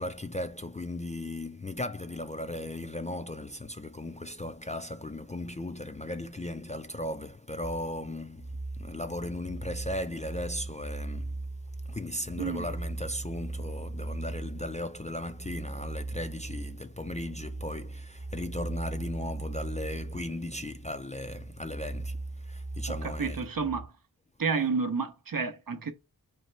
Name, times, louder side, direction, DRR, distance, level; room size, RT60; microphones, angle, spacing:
voice 1, 0.0-11.5 11.8-23.4, left 1 dB, 20° left, 0.3 m, -37 dB
sound 1, 7.6-23.9, right 2 dB, 30° right, 0.9 m, -39 dB
voice 2, 22.9-23.9 24.4-25.9, right 5 dB, 60° right, 0.6 m, -30 dB
4.1 x 3.2 x 3.0 m
wide cardioid pair, 60°, 39 cm